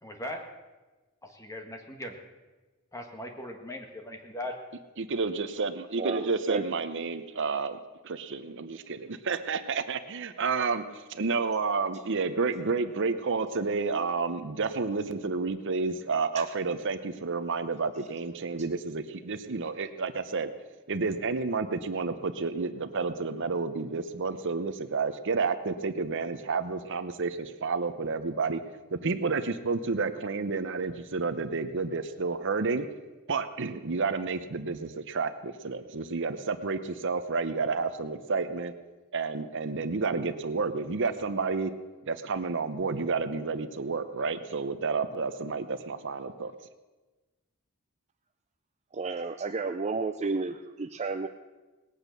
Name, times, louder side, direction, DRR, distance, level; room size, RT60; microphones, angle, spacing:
voice 1, 0.0-0.4 1.2-2.2 2.9-4.6, left 1 dB, 15° left, 3 dB, 1.7 m, -39 dB
voice 2, 5.0-7.8 8.0-20.5 20.9-28.6 28.9-32.9 33.3-38.7 39.1-41.7 42.1-46.5, right 4 dB, 55° right, 10 dB, 0.8 m, -30 dB
voice 3, 6.0-6.6 48.9-51.3, right 4 dB, 30° right, 7 dB, 0.5 m, -32 dB
19.5 x 8.7 x 6.7 m, 1.2 s
head